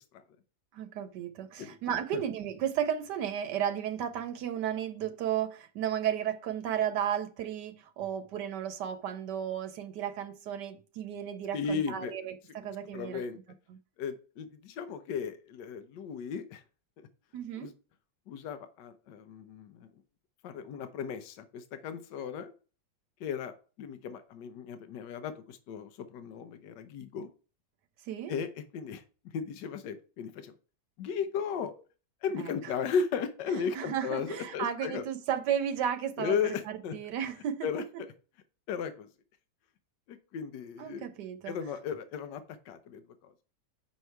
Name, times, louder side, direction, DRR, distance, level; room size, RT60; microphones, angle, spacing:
voice 1, 0.7-13.2 13.7-13.8 17.3-17.7 28.1-28.3 32.4-32.7 33.5-38.0 40.8-41.6, right 9 dB, 80° right, 1.2 m, -34 dB
voice 2, 11.5-12.1 12.9-13.4 14.0-16.6 17.0-17.1 17.6-17.7 18.3-19.9 20.4-22.5 23.2-27.3 28.3-28.5 28.7-29.0 29.3-30.5 31.0-31.8 32.2-35.0 36.2-36.9 37.6-37.8 38.7-39.1 40.1-41.1 41.5-42.4 42.7-43.3, left 6 dB, 80° left, 1.4 m, -35 dB
6.8 x 4.8 x 4.5 m
omnidirectional pair, 1.8 m